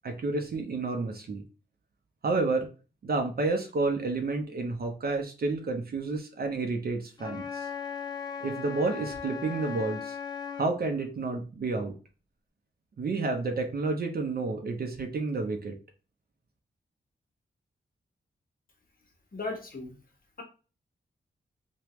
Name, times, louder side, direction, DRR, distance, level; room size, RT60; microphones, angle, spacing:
voice 1, 0.0-1.4 2.2-2.7 3.0-7.7 8.4-10.2 10.6-11.9 13.0-15.7, right 3 dB, 55° right, 3 dB, 0.6 m, -30 dB
Wind instrument woodwind instrument, 7.2-10.8, left 7 dB, 20° left, 0.5 m, -37 dB
voice 2, 19.3-19.9, left 3 dB, 50° left, 3 dB, 1.1 m, -36 dB
3.4 x 2.2 x 3.0 m, 0.35 s
cardioid pair, 60°, 19 cm